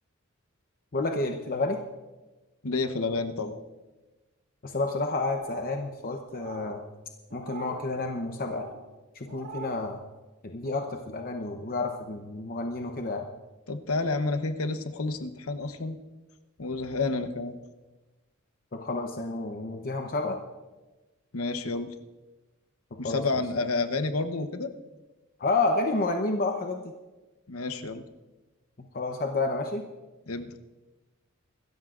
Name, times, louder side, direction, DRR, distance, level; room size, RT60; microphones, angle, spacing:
voice 1, 0.9-1.8 4.6-6.8 7.3-8.7 9.1-10.0 10.4-13.3 18.7-20.4 22.9-23.2 25.4-26.9 28.8-29.8, left 3 dB, 45° left, 3 dB, 0.9 m, -30 dB
voice 2, 2.6-3.6 13.7-16.0 16.6-17.6 21.3-21.9 23.0-24.7 27.5-28.0 30.3-30.5, left 3 dB, 75° left, 8 dB, 1.0 m, -30 dB
sound 1, 5.2-5.8 6.3-6.7 7.3-7.9 8.4-8.8 9.3-9.8, right 4 dB, 70° right, 1.7 m, -43 dB
25.0 x 13.5 x 2.5 m, 1.1 s
head